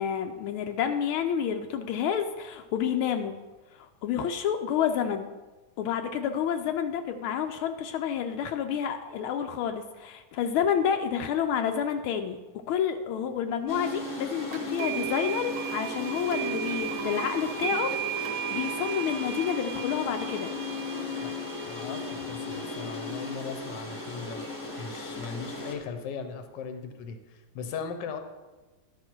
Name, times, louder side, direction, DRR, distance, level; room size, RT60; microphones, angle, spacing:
voice 1, 0.0-3.4 3.8-5.3 5.8-12.4 12.7-17.9 18.5-20.5, left 8 dB, 85° left, 6 dB, 1.4 m, -29 dB
sound 1, 13.7-25.8, left 2 dB, 20° left, 0.8 m, -36 dB
sound 2, 14.5-23.4, right 9 dB, 65° right, 0.8 m, -36 dB
voice 2, 21.6-24.5 24.8-28.2, left 6 dB, 65° left, 7 dB, 1.4 m, -38 dB
12.0 x 5.5 x 4.5 m, 1.2 s
omnidirectional pair, 2.3 m